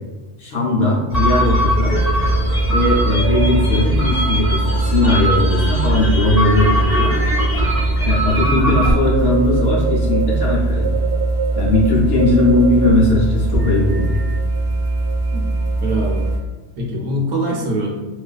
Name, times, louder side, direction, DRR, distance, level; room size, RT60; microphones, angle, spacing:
voice 1, 0.4-1.9 2.7-7.1 8.1-10.9 11.5-14.2, left 2 dB, 65° left, -4 dB, 0.8 m, -18 dB
sound 1, 1.1-16.4, right 2 dB, 35° left, 1.0 m, -19 dB
voice 2, 15.8-16.2 16.8-17.9, right 1 dB, 70° right, -1 dB, 0.8 m, -23 dB
2.5 x 2.3 x 2.2 m, 1.2 s
omnidirectional pair, 1.2 m